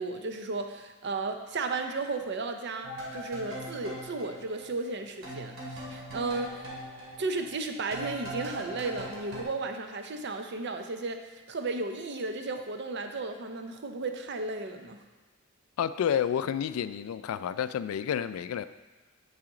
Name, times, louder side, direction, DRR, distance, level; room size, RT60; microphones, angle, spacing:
voice 1, 0.0-6.7 7.2-11.2 11.5-15.0, right 3 dB, 55° right, 5 dB, 0.6 m, -34 dB
sound 1, 2.8-5.0 5.2-9.4, right 1 dB, 85° right, 2.3 m, -40 dB
voice 2, 15.8-18.6, left 8 dB, 85° left, 15 dB, 0.3 m, -30 dB
8.9 x 4.9 x 3.8 m, 1.2 s
head